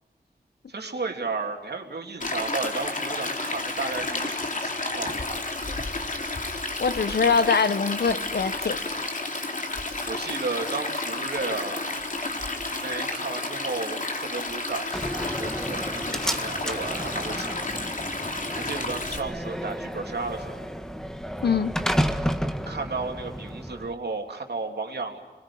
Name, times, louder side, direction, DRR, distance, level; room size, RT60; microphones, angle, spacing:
voice 1, 0.7-5.3 10.1-12.0 12.7-17.9 18.6-20.7 22.6-25.2, right 3 dB, 90° right, 3 dB, 3.3 m, -33 dB
Stream, 2.2-19.2, left 2 dB, 55° left, 2.9 m, -31 dB
voice 2, 6.8-8.8 21.4-21.8, left 5 dB, 85° left, 13 dB, 1.1 m, -23 dB
Slam, 14.9-23.9, equal, 5° left, 1.7 m, -31 dB
27.0 x 22.0 x 8.8 m, 1.2 s
wide cardioid pair, 75°, 17 cm